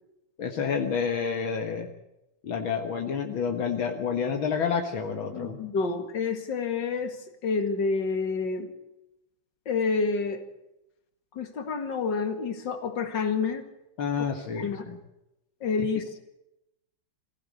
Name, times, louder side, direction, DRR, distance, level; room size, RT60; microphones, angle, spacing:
voice 1, 0.4-1.9 2.4-5.6 14.0-15.0, left 6 dB, 80° left, 4 dB, 2.4 m, -29 dB
voice 2, 5.3-8.7 9.7-10.4 11.3-13.7 14.6-14.9 15.6-16.2, left 4 dB, 65° left, 7 dB, 2.7 m, -28 dB
23.0 x 15.5 x 8.4 m, 0.88 s
omnidirectional pair, 2.2 m